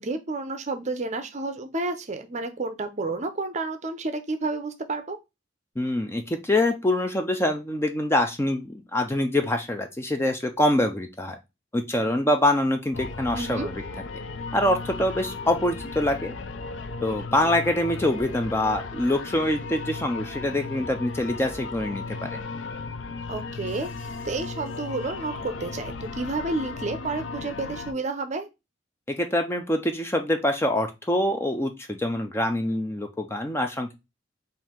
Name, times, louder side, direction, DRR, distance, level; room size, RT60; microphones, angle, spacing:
voice 1, 0.0-5.2 13.3-13.7 23.3-28.5, right 3 dB, 35° right, 8 dB, 0.6 m, -30 dB
voice 2, 5.8-11.4 11.7-13.8 14.5-16.3 17.0-22.4 29.1-33.9, left 1 dB, 15° left, 5 dB, 0.5 m, -25 dB
sound 1, 12.9-27.9, left 3 dB, 65° left, 0.5 m, -36 dB
4.5 x 2.6 x 3.6 m, 0.23 s
head